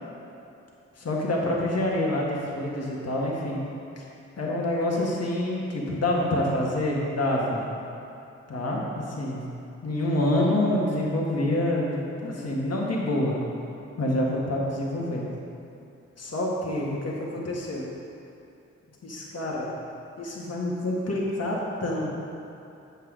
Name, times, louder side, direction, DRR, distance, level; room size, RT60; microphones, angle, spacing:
voice 1, 1.0-3.6 4.0-4.1 4.4-7.6 8.5-9.4 9.8-13.4 14.0-15.2 16.2-17.9 19.0-19.7 20.2-22.1, left 1 dB, 50° left, -3 dB, 1.7 m, -27 dB
8.1 x 5.5 x 5.0 m, 2.8 s
supercardioid pair, 40°, 32 cm